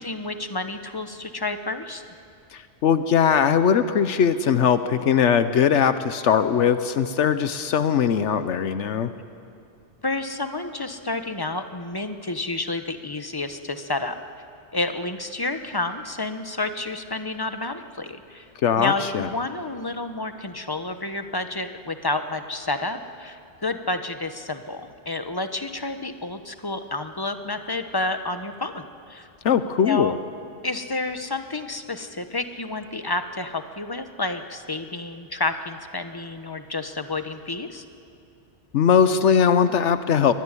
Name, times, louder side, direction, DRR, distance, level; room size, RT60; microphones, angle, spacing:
voice 1, 0.0-2.0 10.0-14.2 14.7-18.5 18.8-29.3 29.8-30.1 30.6-37.8, left 2 dB, 20° left, 8 dB, 1.0 m, -30 dB
voice 2, 2.5-9.1 18.6-19.3 29.4-30.1 38.7-40.3, left 7 dB, 80° left, 11 dB, 1.1 m, -20 dB
24.0 x 20.0 x 9.8 m, 2.5 s
omnidirectional pair, 1.2 m